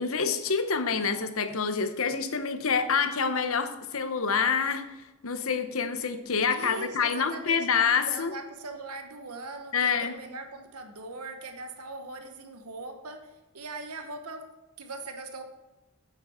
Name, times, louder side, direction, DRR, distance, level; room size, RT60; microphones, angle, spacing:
voice 1, 0.0-5.0 5.2-8.3 9.7-10.1, left 5 dB, 65° left, 9 dB, 0.9 m, -27 dB
voice 2, 6.5-7.7 8.1-15.4, right 3 dB, 85° right, 6 dB, 1.1 m, -41 dB
8.5 x 8.0 x 4.4 m, 1.0 s
head